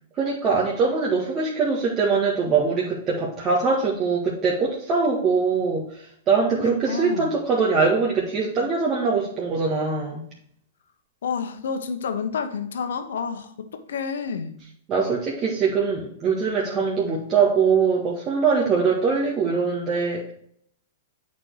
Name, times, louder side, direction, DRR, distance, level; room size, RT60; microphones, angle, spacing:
voice 1, 0.2-10.2 14.9-20.3, right 5 dB, 30° right, -4 dB, 1.8 m, -22 dB
voice 2, 6.5-7.3 11.2-14.5, left 6 dB, 70° left, 9 dB, 1.0 m, -29 dB
8.7 x 4.5 x 4.7 m, 0.65 s
hypercardioid pair, 110°, 0 cm